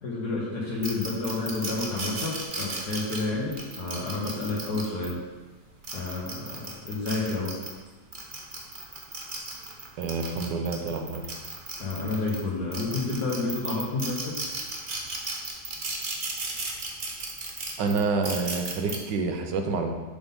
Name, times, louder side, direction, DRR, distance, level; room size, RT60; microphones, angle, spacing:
voice 1, 0.0-5.2 5.9-7.5 11.8-14.3, left 3 dB, 65° left, -6 dB, 1.6 m, -30 dB
sound 1, 0.8-5.1 5.7-7.7 8.1-12.4 12.7-19.0, right 3 dB, 40° right, 0.8 m, -35 dB
voice 2, 10.0-11.2 17.8-19.9, right 4 dB, 90° right, 4 dB, 1.4 m, -28 dB
6.9 x 3.7 x 5.3 m, 1.3 s
omnidirectional pair, 1.8 m